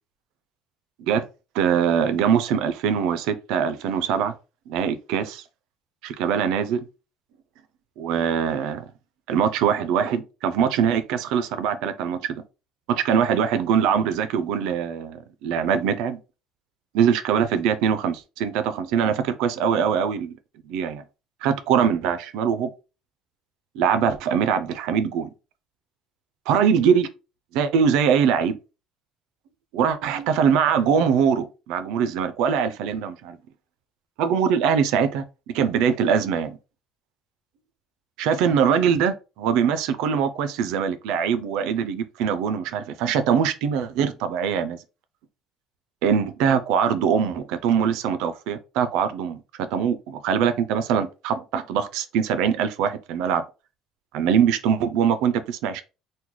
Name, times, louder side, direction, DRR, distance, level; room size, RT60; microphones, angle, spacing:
voice 1, 1.5-4.3 4.7-5.4 6.0-6.8 8.0-8.8 9.3-12.4 12.9-16.2 16.9-20.3 20.7-21.0 21.4-22.7 23.8-25.3 26.5-27.1 27.5-28.6 29.7-33.4 34.2-35.2 35.5-36.6 38.2-44.8 46.0-53.4 54.1-55.8, right 7 dB, 75° right, 0.4 m, -22 dB
3.0 x 2.2 x 3.7 m
cardioid pair, 170°, 0 cm